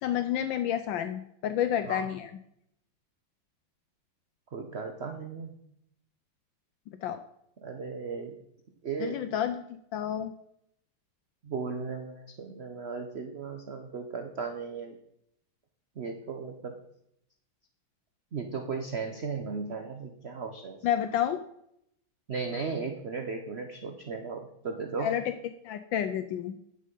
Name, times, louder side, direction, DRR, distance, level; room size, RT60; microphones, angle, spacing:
voice 1, 0.0-2.3 7.0-7.2 9.0-10.3 20.8-21.4 25.0-25.3 25.6-26.6, left 10 dB, 75° left, 10 dB, 1.3 m, -30 dB
voice 2, 4.5-5.5 7.6-8.4 8.8-9.2 11.4-14.9 16.0-16.7 18.3-20.8 22.3-25.1, right 5 dB, 55° right, 5 dB, 0.7 m, -36 dB
10.0 x 6.5 x 5.3 m, 0.74 s
omnidirectional pair, 2.2 m